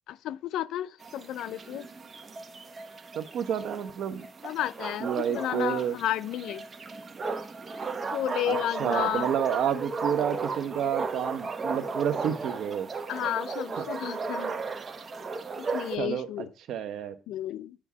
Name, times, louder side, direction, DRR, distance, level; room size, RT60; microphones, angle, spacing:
voice 1, 0.1-1.9 4.4-6.6 8.1-9.3 13.1-14.6 15.6-16.5 17.3-17.8, left 12 dB, 85° left, 0.4 m, -32 dB
sound 1, 1.0-16.0, right 4 dB, 40° right, 1.2 m, -35 dB
voice 2, 3.1-4.3 5.0-6.0 8.4-12.9 13.8-13.9 16.0-17.1, right 8 dB, 80° right, 1.0 m, -30 dB
9.9 x 3.5 x 6.0 m
cardioid pair, 90°, 0 cm